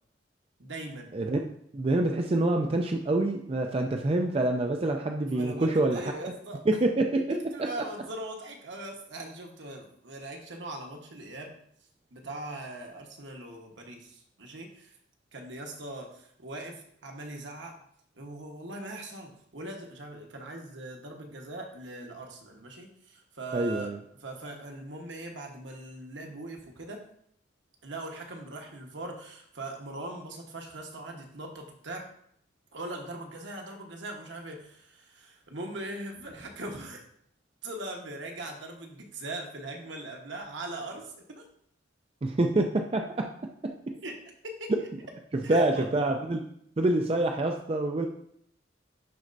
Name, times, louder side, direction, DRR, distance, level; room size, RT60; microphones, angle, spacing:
voice 1, 0.6-1.2 5.3-6.6 7.3-11.6 12.1-15.0 15.3-17.7 18.2-23.9 24.2-27.0 27.8-32.1 32.7-37.0 37.6-41.4 44.0-44.2 44.4-44.9 45.4-45.9, right 2 dB, 70° right, 2 dB, 1.2 m, -40 dB
voice 2, 1.7-6.3 6.7-7.7 23.5-24.0 42.2-43.3 43.6-43.7 45.3-46.4 46.8-48.1, right 2 dB, 30° right, 3 dB, 0.4 m, -26 dB
11.0 x 4.3 x 2.6 m, 0.68 s
head